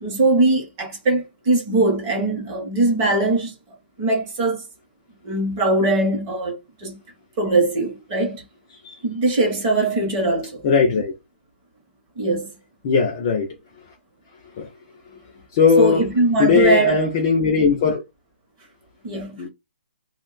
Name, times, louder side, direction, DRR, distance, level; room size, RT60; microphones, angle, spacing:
voice 1, 0.0-3.5 4.0-4.6 5.2-7.0 7.4-8.4 9.0-10.6 12.2-12.5 15.8-17.1 19.0-19.4, right 2 dB, 20° right, 0.7 m, -21 dB
voice 2, 10.6-11.1 12.8-13.5 14.6-14.7 15.5-16.1 16.4-18.0 19.4-19.5, left 5 dB, 20° left, 0.3 m, -18 dB
2.6 x 2.1 x 3.8 m
hypercardioid pair, 175°, 6 cm